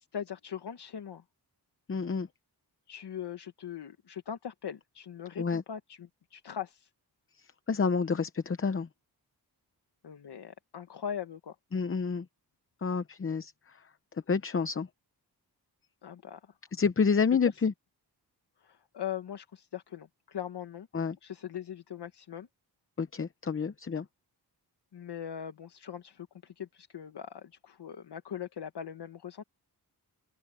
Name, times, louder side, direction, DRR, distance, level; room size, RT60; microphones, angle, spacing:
voice 1, 0.1-1.2 2.9-6.9 10.0-11.5 16.0-16.5 17.4-17.5 18.6-20.9 21.2-22.5 24.9-29.4, left 9 dB, 75° left, 1.4 m, -40 dB
voice 2, 1.9-2.3 5.4-5.6 7.4-8.9 11.7-12.3 12.8-13.8 14.3-14.9 16.7-17.7 20.9-21.2 23.0-24.1, left 5 dB, 35° left, 0.7 m, -29 dB
open air
wide cardioid pair, 160°, 40 cm